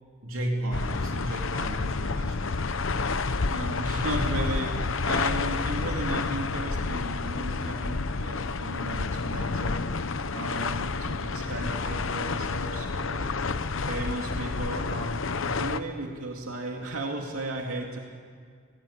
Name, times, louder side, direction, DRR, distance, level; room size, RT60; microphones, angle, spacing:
voice 1, 0.2-2.6 15.4-15.9, right 1 dB, 65° right, -1 dB, 3.4 m, -34 dB
sound 1, 0.7-15.8, left 4 dB, 65° left, 0.8 m, -29 dB
voice 2, 3.5-10.0 10.3-13.3 13.8-15.2 15.6-18.0, right 1 dB, 85° right, 1 dB, 2.4 m, -35 dB
26.5 x 19.0 x 8.7 m, 2.1 s
head